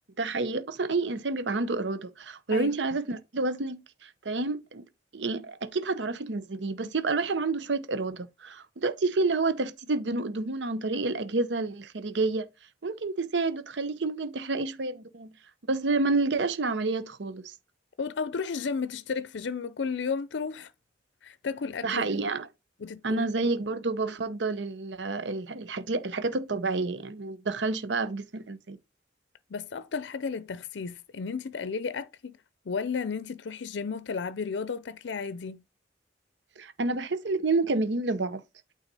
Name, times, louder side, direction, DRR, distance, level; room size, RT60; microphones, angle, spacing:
voice 1, 0.2-4.9 5.1-12.5 12.8-15.3 15.7-17.5 21.8-22.5 23.0-28.8 36.6-38.4, right 3 dB, 80° right, 0.8 m, -29 dB
voice 2, 18.0-20.7 21.2-22.0 22.8-23.3 29.5-32.4 32.7-35.6, left 5 dB, 75° left, 0.5 m, -33 dB
8.9 x 4.0 x 4.1 m
head